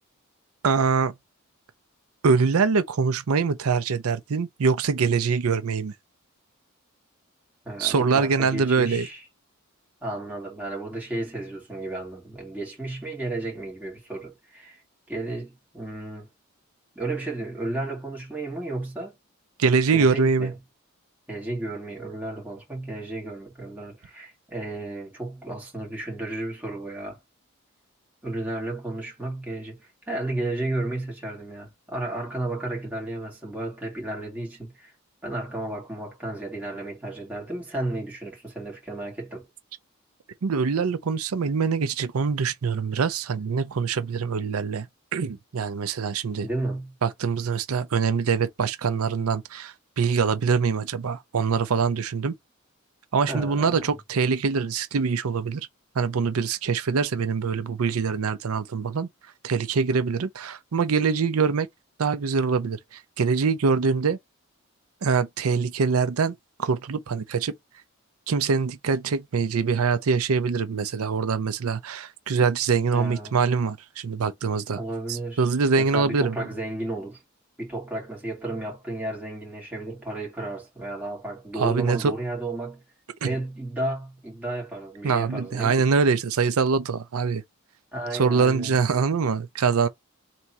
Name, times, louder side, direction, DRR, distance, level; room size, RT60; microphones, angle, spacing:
voice 1, 0.6-1.2 2.2-5.9 7.8-9.1 19.6-20.5 40.4-46.5 47.0-52.3 53.1-55.7 56.0-59.1 59.4-61.7 62.0-64.2 65.0-67.5 68.3-74.8 75.1-76.4 81.6-82.1 83.2-83.3 85.0-87.4 88.1-89.9, right 5 dB, 85° right, 0.5 m, -24 dB
voice 2, 7.6-9.2 10.0-14.8 15.1-16.3 17.0-19.2 19.9-20.6 21.3-27.2 28.2-34.9 35.2-39.5 46.4-46.9 53.3-53.8 72.9-73.3 74.7-75.5 75.8-77.2 77.6-82.8 83.2-85.9 87.9-88.8, right 2 dB, 10° right, 2.1 m, -33 dB
3.5 x 2.9 x 4.2 m
head